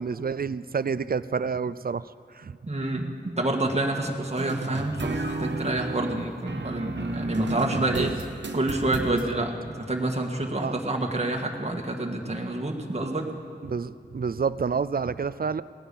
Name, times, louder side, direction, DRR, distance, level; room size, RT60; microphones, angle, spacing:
voice 1, 0.0-2.6 8.0-8.1 9.1-9.4 10.6-10.7 13.6-15.6, right 5 dB, 55° right, 16 dB, 0.4 m, -29 dB
voice 2, 2.7-8.1 8.5-13.3, right 2 dB, 40° right, 1 dB, 1.7 m, -28 dB
sound 1, 4.4-9.3, right 3 dB, 90° right, 1.0 m, -33 dB
18.5 x 10.0 x 7.0 m, 2.6 s
wide cardioid pair, 60°, 18 cm